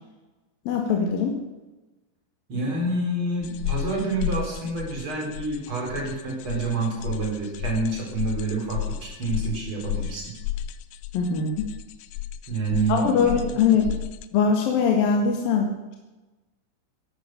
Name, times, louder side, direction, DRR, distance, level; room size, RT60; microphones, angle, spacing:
voice 1, 0.7-1.3 11.1-11.7 12.9-13.9 14.3-16.0, left 6 dB, 60° left, 2 dB, 2.9 m, -22 dB
voice 2, 2.5-10.3 12.5-13.4, right 3 dB, 25° right, -1 dB, 4.7 m, -28 dB
sound 1, 3.4-14.3, left 12 dB, 80° left, 2.9 m, -33 dB
17.0 x 12.0 x 6.7 m, 1.1 s
omnidirectional pair, 5.6 m